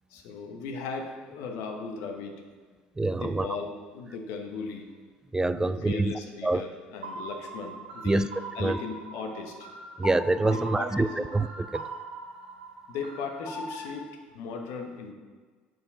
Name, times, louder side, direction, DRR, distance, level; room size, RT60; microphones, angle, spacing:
voice 1, 0.1-2.4 3.1-4.9 5.6-8.3 8.5-9.7 10.5-10.9 12.9-15.1, left 4 dB, 60° left, 3 dB, 1.1 m, -37 dB
voice 2, 3.0-3.5 5.3-6.1 6.4-6.6 8.1-8.3 8.6-8.8 10.0-11.9, right 2 dB, 10° right, 14 dB, 0.3 m, -26 dB
sound 1, 7.0-13.9, right 2 dB, 75° right, 2.2 m, -40 dB
7.7 x 4.7 x 5.5 m, 1.5 s
figure-of-eight pair, 65°, 5 cm